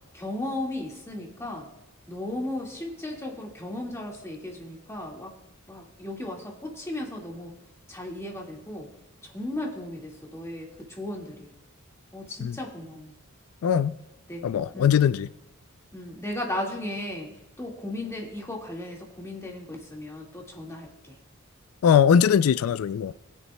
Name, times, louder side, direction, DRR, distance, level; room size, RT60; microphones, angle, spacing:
voice 1, 0.1-1.7 2.1-5.3 5.7-7.5 7.9-8.9 9.2-11.5 12.1-13.1 14.3-14.5 14.7-14.9 15.9-17.3 17.6-21.2, left 1 dB, 15° left, 1.8 m, -35 dB
voice 2, 13.6-14.0 14.4-15.3 21.8-23.1, left 8 dB, 85° left, 0.3 m, -20 dB
20.5 x 9.3 x 2.2 m
head